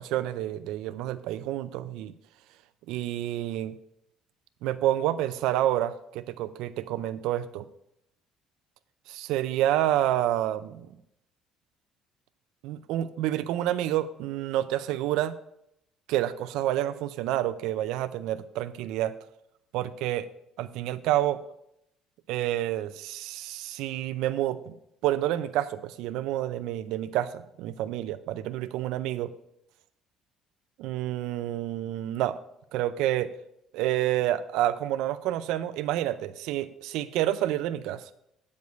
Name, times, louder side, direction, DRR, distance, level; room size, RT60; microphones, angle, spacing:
voice 1, 0.0-2.1 2.9-3.8 4.6-7.7 9.1-10.9 12.6-15.4 16.1-19.2 19.7-20.3 20.6-21.4 22.3-24.7 25.0-29.3 30.8-32.4 32.7-33.3 33.7-38.1, right 13 dB, 80° right, 12 dB, 0.5 m, -28 dB
9.3 x 5.3 x 8.1 m, 0.78 s
cardioid pair, 180°, 0 cm